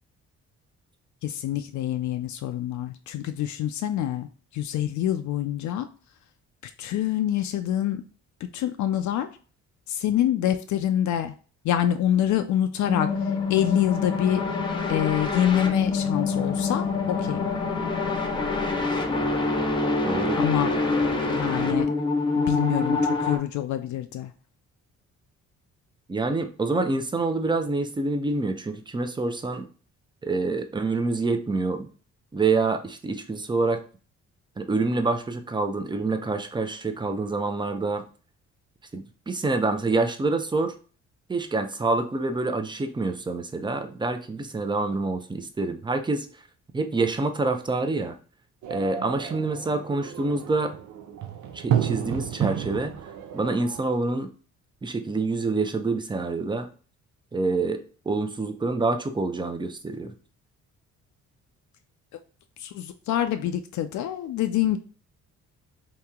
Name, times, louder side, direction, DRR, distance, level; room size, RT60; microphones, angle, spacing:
voice 1, 1.2-4.3 4.5-5.9 6.8-8.0 8.5-9.3 9.9-11.3 11.6-13.1 13.5-14.4 14.9-17.5 20.4-21.9 22.4-24.3 62.6-64.8, left 11 dB, 70° left, 8 dB, 0.4 m, -26 dB
sound 1, 12.8-23.4, left 3 dB, 15° left, 0.8 m, -26 dB
voice 2, 20.0-20.4 26.1-29.7 30.2-31.9 32.3-33.8 34.6-38.0 38.9-40.7 41.3-46.3 46.7-48.2 48.7-50.7 51.5-52.9 53.3-54.3 54.8-56.7 57.3-60.1, right 3 dB, 15° right, 8 dB, 0.5 m, -27 dB
sound 2, 48.6-53.8, right 9 dB, 70° right, 0.6 m, -31 dB
2.9 x 2.8 x 3.5 m, 0.38 s
cardioid pair, 90°, 30 cm